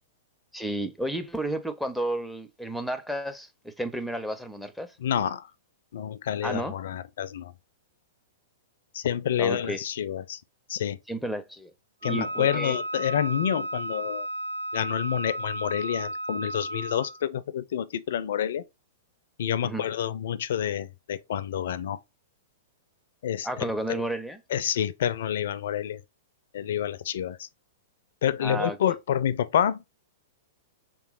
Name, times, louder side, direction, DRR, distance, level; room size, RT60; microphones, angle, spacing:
voice 1, 0.5-4.9 6.4-6.7 9.4-9.8 11.1-11.7 12.0-12.8 19.6-19.9 23.4-24.4 28.4-28.8, right 1 dB, ahead, 0.5 m, -32 dB
voice 2, 5.0-5.5 5.9-7.5 8.9-10.4 10.7-11.0 12.0-14.3 14.7-18.6 19.4-22.0 23.2-24.0 24.5-26.0 26.5-27.4 28.2-29.9, left 10 dB, 65° left, 0.4 m, -28 dB
Wind instrument woodwind instrument, 12.0-17.2, right 1 dB, 85° right, 0.5 m, -34 dB
3.3 x 3.0 x 2.4 m
hypercardioid pair, 110°, 0 cm